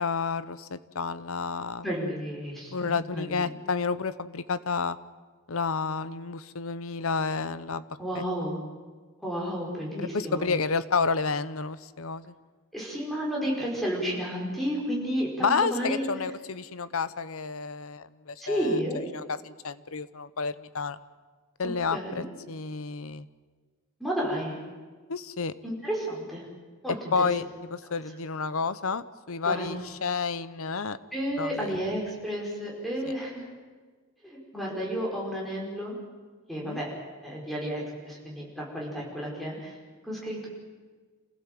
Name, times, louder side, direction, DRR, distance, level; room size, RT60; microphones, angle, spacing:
voice 1, 0.0-1.9 2.7-5.0 5.5-7.8 8.1-8.2 10.0-12.3 15.4-21.0 21.6-23.3 25.1-25.5 26.9-31.0 31.4-31.8 36.6-36.8, left 4 dB, 70° left, 15 dB, 0.8 m, -30 dB
voice 2, 1.8-3.6 8.0-8.6 9.2-10.4 12.7-16.0 18.4-19.0 21.9-22.3 24.0-24.6 25.6-26.4 26.8-27.3 29.4-29.8 31.1-33.4 34.2-36.0 36.5-36.9 37.1-39.7 40.0-40.5, equal, ahead, -3 dB, 5.3 m, -32 dB
27.5 x 16.0 x 7.7 m, 1.4 s
head